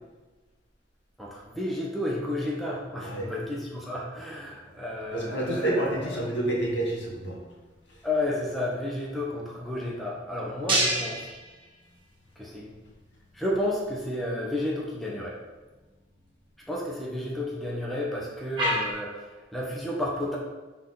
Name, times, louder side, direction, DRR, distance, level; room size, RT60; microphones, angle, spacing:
voice 1, 1.2-6.2 8.0-11.3 12.4-12.7 13.3-15.4 16.7-20.4, left 1 dB, ahead, -4 dB, 1.0 m, -32 dB
voice 2, 3.0-3.3 5.1-7.4 7.9-8.0, right 1 dB, 70° left, -3 dB, 2.2 m, -29 dB
sound 1, 4.1-18.9, right 1 dB, 25° right, 1.9 m, -36 dB
6.2 x 4.0 x 6.1 m, 1.2 s
head